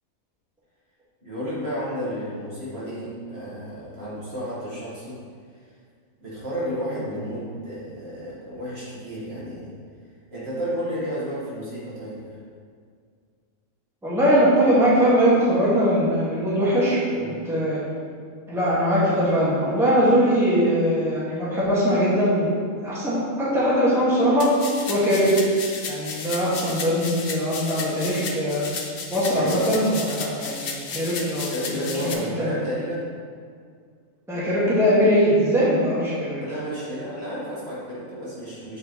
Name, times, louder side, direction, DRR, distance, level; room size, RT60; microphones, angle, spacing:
voice 1, 1.2-5.2 6.2-9.7 10.3-12.4 17.1-17.5 29.3-29.8 31.5-33.1 36.4-38.8, equal, 45° right, -9 dB, 1.7 m, -32 dB
voice 2, 14.0-17.0 17.4-17.8 18.5-22.5 22.8-24.5 24.9-25.3 25.9-28.7 29.1-31.5 32.4-32.5 34.3-36.4, equal, ahead, -9 dB, 1.5 m, -21 dB
sound 1, 24.4-32.1, left 4 dB, 55° left, 0.7 m, -34 dB
7.5 x 5.0 x 3.0 m, 2.1 s
omnidirectional pair, 1.5 m